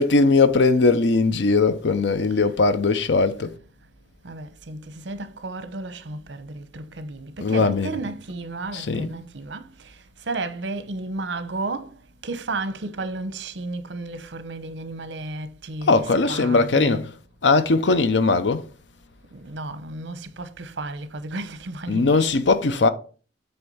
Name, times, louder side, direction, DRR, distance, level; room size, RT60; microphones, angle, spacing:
voice 1, 0.0-3.6 7.4-8.0 8.7-9.1 15.9-17.2 17.4-18.7 21.9-22.9, left 3 dB, 80° left, 0.7 m, -20 dB
voice 2, 4.2-10.0 10.3-17.0 19.3-22.3, right 2 dB, 85° right, 0.8 m, -33 dB
8.0 x 3.4 x 5.4 m
head